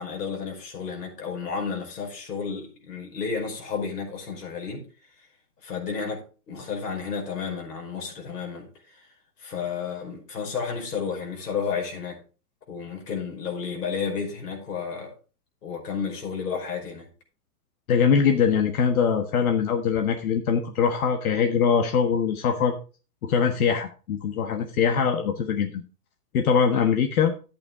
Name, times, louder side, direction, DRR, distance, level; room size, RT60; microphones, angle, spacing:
voice 1, 0.0-4.9 5.6-8.7 9.4-12.2 12.7-15.1 15.6-17.1, left 6 dB, 85° left, 5.4 m, -32 dB
voice 2, 17.9-22.7 23.2-25.8 26.3-27.3, left 6 dB, 65° left, 1.5 m, -22 dB
11.5 x 8.5 x 3.6 m
hypercardioid pair, 155°, 46 cm